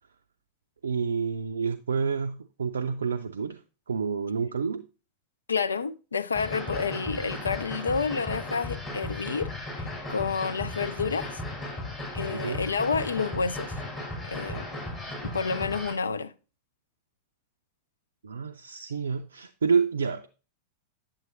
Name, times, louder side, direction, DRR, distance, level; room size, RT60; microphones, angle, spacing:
voice 1, 0.8-3.6 3.9-4.8 12.3-12.6 18.2-20.3, right 5 dB, 70° right, 0.4 m, -28 dB
voice 2, 5.5-11.4 12.1-13.8 14.2-14.7 15.2-16.3, left 5 dB, 75° left, 0.3 m, -29 dB
sound 1, 6.3-15.9, left 1 dB, 25° left, 4.4 m, -36 dB
9.2 x 6.9 x 2.6 m
figure-of-eight pair, 90°, 0 cm